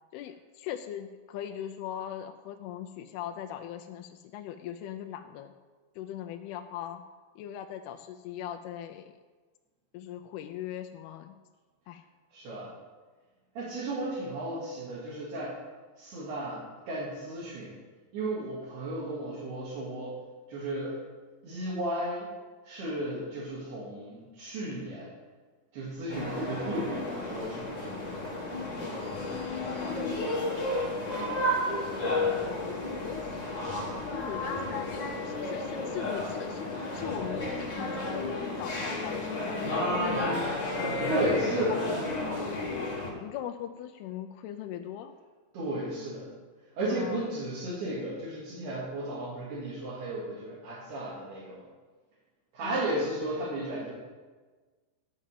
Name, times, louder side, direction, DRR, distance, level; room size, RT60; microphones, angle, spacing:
voice 1, 0.1-5.5 6.0-7.0 7.4-9.1 9.9-11.4 11.9-12.0 29.3-30.3 33.0-33.4 34.1-39.9 41.4-41.8 43.2-45.1 46.9-47.3 52.6-52.9, left 10 dB, 85° left, 5 dB, 2.3 m, -40 dB
voice 2, 12.3-12.7 13.6-15.6 16.0-17.8 18.1-20.2 20.5-21.0 21.4-22.3 22.6-25.1 25.7-28.1 41.1-41.8 45.5-46.3 46.8-51.7 52.5-53.9, right 1 dB, 65° right, -8 dB, 3.9 m, -34 dB
sound 1, 26.1-43.1, left 2 dB, 65° left, 1.1 m, -32 dB
12.0 x 5.4 x 7.5 m, 1.4 s
omnidirectional pair, 5.0 m